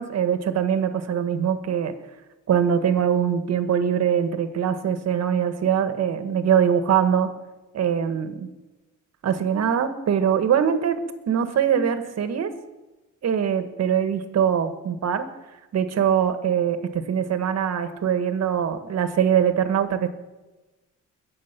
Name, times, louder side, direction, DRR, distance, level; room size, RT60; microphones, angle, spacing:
voice 1, 0.0-1.9 2.5-7.3 7.7-8.5 9.2-12.5 13.2-15.3 15.7-20.1, right 8 dB, 60° right, 9 dB, 1.6 m, -22 dB
21.0 x 7.7 x 6.0 m, 1.1 s
cardioid pair, 90°, 30 cm